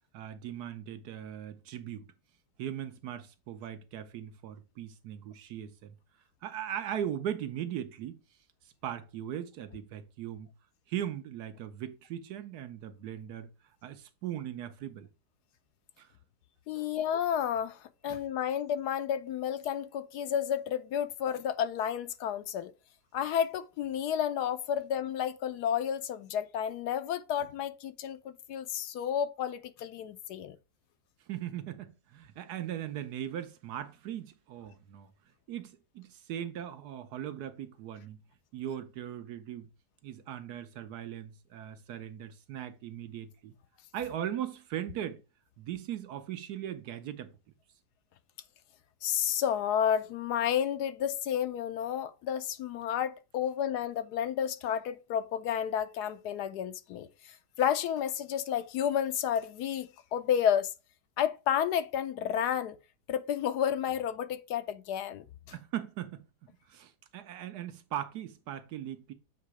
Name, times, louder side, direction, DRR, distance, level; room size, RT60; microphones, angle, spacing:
voice 1, 0.1-2.1 2.6-5.9 6.4-8.2 8.8-10.5 10.9-13.5 13.8-15.1 16.0-16.1 16.7-17.0 31.3-35.1 35.5-38.2 38.5-39.7 40.0-43.5 43.9-45.2 45.6-47.3 65.5-66.2 66.7-69.1, right 10 dB, 70° right, 1.2 m, -39 dB
voice 2, 16.7-22.7 23.1-30.6 49.0-60.7 61.2-62.8 63.1-65.2, left 9 dB, 75° left, 1.1 m, -31 dB
7.5 x 3.0 x 4.7 m
omnidirectional pair, 1.8 m